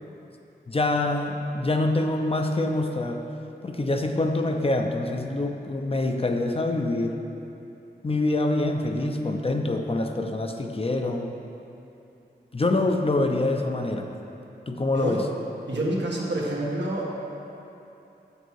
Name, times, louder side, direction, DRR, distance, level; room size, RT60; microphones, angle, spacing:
voice 1, 0.7-3.2 3.6-7.2 8.0-11.3 12.5-14.1 14.7-15.3, left 2 dB, 35° left, 4 dB, 0.6 m, -25 dB
voice 2, 14.9-15.2 15.7-17.1, right 1 dB, 85° right, -4 dB, 1.4 m, -27 dB
8.2 x 6.7 x 4.7 m, 2.9 s
wide cardioid pair, 85°, 18 cm